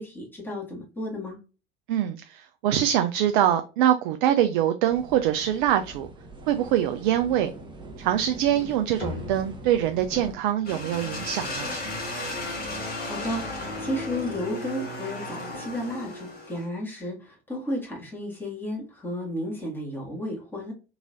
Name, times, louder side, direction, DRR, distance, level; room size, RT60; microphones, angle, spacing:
voice 1, 0.0-1.4 13.1-20.7, left 1 dB, 5° left, 1.9 m, -33 dB
voice 2, 1.9-6.1 6.5-7.5 8.0-11.8, right 11 dB, 55° right, 0.5 m, -24 dB
sound 1, 4.9-10.3, right 3 dB, 15° right, 0.9 m, -43 dB
sound 2, 9.0-13.7, left 5 dB, 85° left, 0.9 m, -44 dB
sound 3, 10.6-16.7, left 2 dB, 30° left, 2.0 m, -34 dB
3.8 x 3.0 x 2.5 m
figure-of-eight pair, 70°, 30 cm